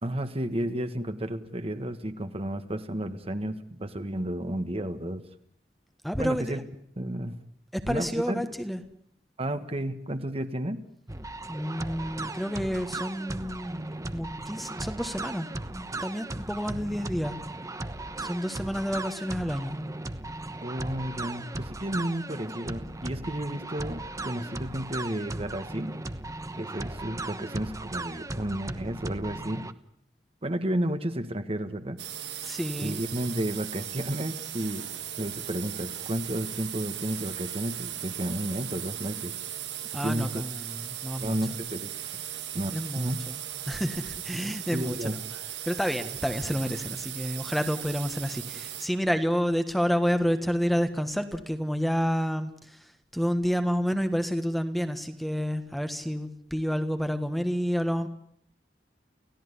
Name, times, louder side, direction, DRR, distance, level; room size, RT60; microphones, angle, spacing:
voice 1, 0.0-5.2 6.2-6.6 7.0-7.4 7.9-8.4 9.4-10.8 20.6-25.9 26.6-29.6 30.4-32.0 32.8-34.9 35.2-39.3 40.0-40.4 41.2-42.2 42.5-43.2 44.7-45.1, right 1 dB, 35° right, 9 dB, 1.6 m, -32 dB
voice 2, 6.0-6.6 7.7-8.8 11.5-13.8 14.1-17.4 18.2-19.8 32.4-33.0 39.9-41.4 42.7-43.4 43.7-45.1 45.6-58.1, equal, ahead, 8 dB, 1.5 m, -29 dB
sound 1, 11.1-29.7, right 2 dB, 20° right, 1.1 m, -37 dB
sound 2, 32.0-48.9, right 11 dB, 85° right, 2.2 m, -38 dB
29.0 x 16.5 x 9.9 m, 0.70 s
head